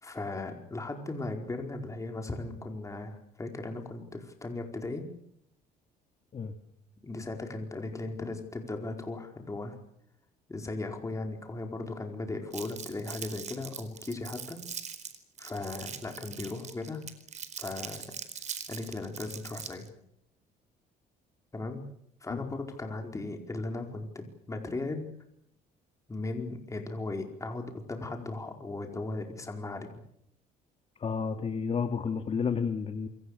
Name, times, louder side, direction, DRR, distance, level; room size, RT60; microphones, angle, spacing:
voice 1, 0.0-5.1 7.0-9.8 10.5-14.6 15.4-17.0 17.6-18.0 18.7-19.9 21.5-21.8 22.2-25.1 26.1-29.9, left 2 dB, 20° left, 3 dB, 4.7 m, -37 dB
Crumpling crinkling, 12.5-19.9, right 7 dB, 45° right, 4.4 m, -41 dB
voice 2, 31.0-33.1, left 6 dB, 35° left, 8 dB, 2.1 m, -31 dB
28.5 x 24.0 x 6.7 m, 0.73 s
cardioid pair, 110°, 17 cm